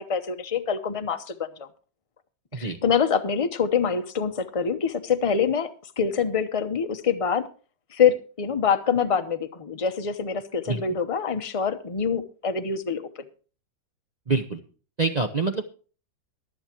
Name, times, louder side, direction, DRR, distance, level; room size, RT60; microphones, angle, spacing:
voice 1, 0.0-1.7 2.5-7.5 7.9-13.1, left 6 dB, 45° left, 8 dB, 0.4 m, -25 dB
voice 2, 14.3-14.6 15.0-15.6, right 3 dB, 55° right, 4 dB, 0.4 m, -25 dB
23.0 x 8.0 x 2.9 m, 0.38 s
omnidirectional pair, 2.1 m